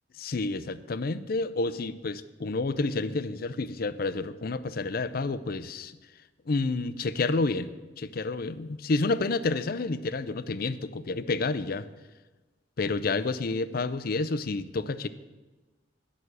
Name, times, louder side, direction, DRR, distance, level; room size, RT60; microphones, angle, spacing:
voice 1, 0.1-5.9 6.5-11.9 12.8-15.1, left 3 dB, 55° left, 14 dB, 0.5 m, -29 dB
11.0 x 6.2 x 8.0 m, 1.2 s
head